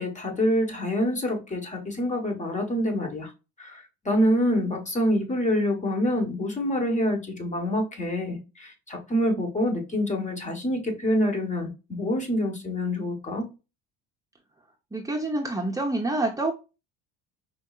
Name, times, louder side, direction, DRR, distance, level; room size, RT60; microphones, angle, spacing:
voice 1, 0.0-3.3 3.6-13.5, equal, 25° left, 4 dB, 1.3 m, -26 dB
voice 2, 14.9-16.5, right 2 dB, 10° right, -2 dB, 0.8 m, -27 dB
4.5 x 2.7 x 2.4 m, 0.28 s
supercardioid pair, 95°, 29 cm